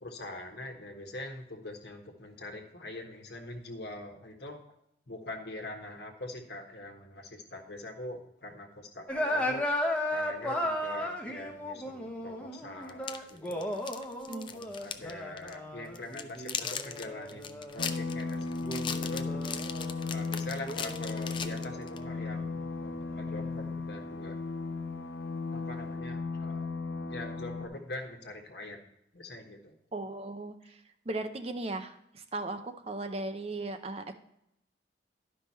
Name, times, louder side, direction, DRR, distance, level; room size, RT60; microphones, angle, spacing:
voice 1, 0.0-4.6 5.1-9.6 10.1-13.6 14.5-19.4 20.1-24.4 25.5-26.7 27.1-28.8 29.1-29.7, left 2 dB, 60° left, 3 dB, 1.4 m, -43 dB
sound 1, 9.1-17.9 18.6-20.2 20.6-23.5, left 1 dB, 5° left, 0.9 m, -36 dB
sound 2, 12.9-15.1 15.4-15.5 15.9-22.0, left 7 dB, 25° left, 0.4 m, -38 dB
sound 3, 17.8-27.7, left 3 dB, 75° left, 0.8 m, -36 dB
voice 2, 29.9-34.1, right 2 dB, 30° right, 8 dB, 0.6 m, -37 dB
11.5 x 5.4 x 4.2 m, 0.79 s
head